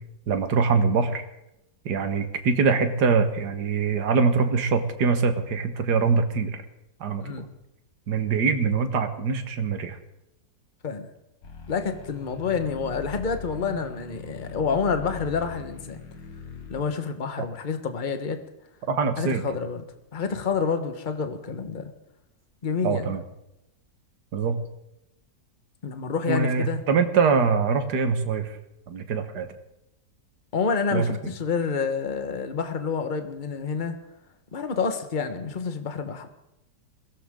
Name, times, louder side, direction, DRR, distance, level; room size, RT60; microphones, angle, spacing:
voice 1, 0.3-1.2 1.9-6.6 7.0-7.5 8.1-10.0 18.9-19.4 22.8-23.2 24.3-24.6 26.3-28.6 28.9-29.5 30.9-31.1, right 5 dB, 65° right, 8 dB, 1.9 m, -23 dB
sound 1, 11.4-16.8, left 5 dB, 90° left, 2.3 m, -40 dB
voice 2, 11.7-16.0 16.7-18.4 19.2-19.8 20.1-21.9 22.6-23.2 25.8-26.8 30.5-33.9 34.5-36.3, left 5 dB, 30° left, 7 dB, 1.3 m, -28 dB
22.0 x 17.0 x 3.8 m, 0.87 s
omnidirectional pair, 1.9 m